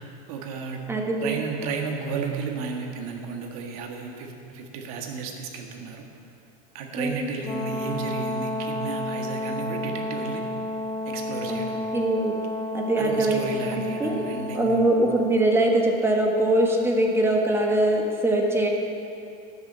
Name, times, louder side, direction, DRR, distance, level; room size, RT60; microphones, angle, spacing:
voice 1, 0.3-0.9 1.2-6.0 6.7-10.4 11.1-11.8 13.0-14.8, right 5 dB, 70° right, 2 dB, 1.8 m, -33 dB
voice 2, 0.9-1.4 6.9-7.3 11.5-11.6 11.9-12.3 12.7-14.2 14.5-18.7, right 1 dB, 10° right, 1 dB, 1.4 m, -22 dB
Brass instrument, 7.4-15.4, left 2 dB, 25° left, 0.9 m, -31 dB
11.5 x 7.2 x 7.6 m, 2.7 s
supercardioid pair, 130°, 20 cm